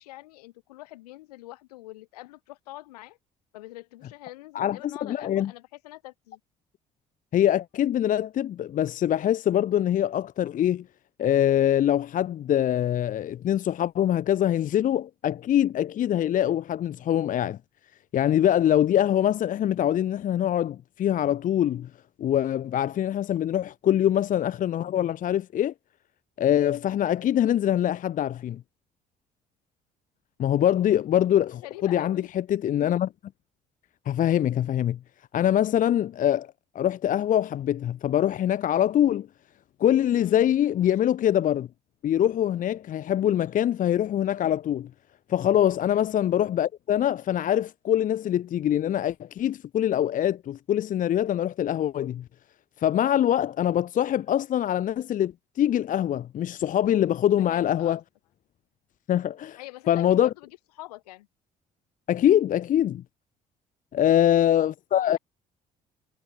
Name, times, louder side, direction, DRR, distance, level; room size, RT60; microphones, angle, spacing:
voice 1, 0.0-3.2 3.5-6.4 31.6-32.3 40.1-40.4 45.9-46.1 57.4-58.0 59.6-60.5 60.8-61.3, left 18 dB, 70° left, 4.1 m, -45 dB
voice 2, 4.5-5.5 7.3-10.8 11.2-17.6 18.1-21.9 22.2-25.7 26.4-28.6 30.4-33.1 34.1-35.0 35.3-36.5 36.7-39.3 39.8-41.7 42.0-44.9 45.3-52.2 52.8-58.0 59.1-59.6 59.9-60.3 62.1-63.0 63.9-65.2, left 11 dB, 40° left, 0.7 m, -24 dB
figure-of-eight pair, 50°, 21 cm